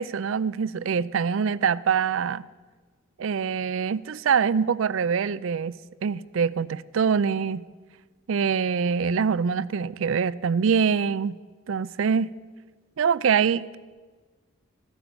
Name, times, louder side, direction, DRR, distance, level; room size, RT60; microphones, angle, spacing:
voice 1, 0.0-2.5 3.2-5.8 6.0-7.6 8.3-11.4 11.7-12.3 13.0-13.8, right 6 dB, 70° right, 0.4 m, -24 dB
14.5 x 10.0 x 7.0 m
head